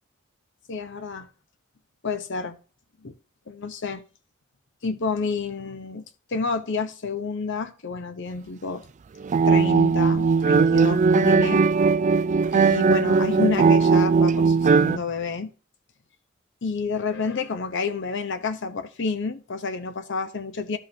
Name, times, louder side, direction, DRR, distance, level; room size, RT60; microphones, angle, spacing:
voice 1, 0.7-1.3 2.0-2.6 3.0-3.1 3.5-4.0 4.8-6.0 6.3-8.9 9.4-11.6 12.5-15.5 16.6-20.8, left 4 dB, 60° left, 0.8 m, -29 dB
sound 1, 9.2-15.0, right 5 dB, 35° right, 0.3 m, -19 dB
13.0 x 5.5 x 2.8 m
head